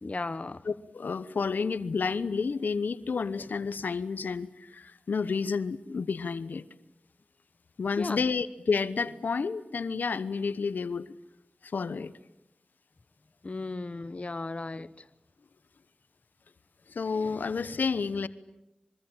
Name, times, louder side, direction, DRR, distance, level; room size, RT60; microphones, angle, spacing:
voice 1, 0.0-0.7 8.0-8.2 13.4-15.1, left 3 dB, 45° left, 15 dB, 0.9 m, -35 dB
voice 2, 0.7-6.6 7.8-11.1 11.6-12.1 16.9-18.3, left 5 dB, 80° left, 15 dB, 1.0 m, -30 dB
26.0 x 24.0 x 8.9 m, 0.91 s
cardioid pair, 45°, 3 cm